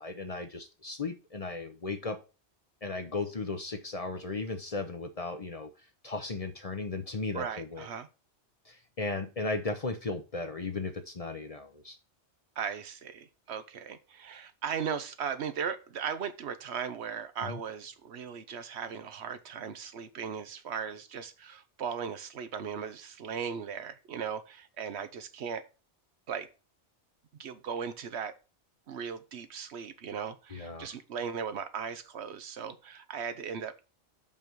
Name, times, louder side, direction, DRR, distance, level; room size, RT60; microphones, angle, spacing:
voice 1, 0.0-2.2 2.8-5.7 6.0-7.9 8.7-12.0 17.4-17.6 30.5-30.9, left 3 dB, 40° left, 0.7 m, -36 dB
voice 2, 7.3-8.1 12.6-25.7 26.3-26.5 27.4-28.3 28.9-33.8, right 7 dB, 70° right, 1.0 m, -37 dB
5.6 x 5.2 x 6.2 m
omnidirectional pair, 1.2 m